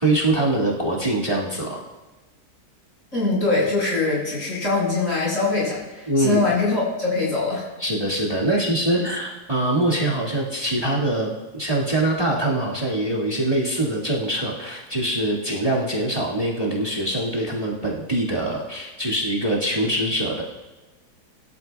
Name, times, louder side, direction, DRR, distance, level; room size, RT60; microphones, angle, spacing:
voice 1, 0.0-1.8 6.1-6.4 7.8-20.4, right 1 dB, 20° right, -6 dB, 2.1 m, -23 dB
voice 2, 3.1-7.6 8.5-8.6 8.9-9.0, left 3 dB, 50° left, -5 dB, 5.9 m, -23 dB
22.5 x 12.5 x 2.4 m, 1.1 s
omnidirectional pair, 1.8 m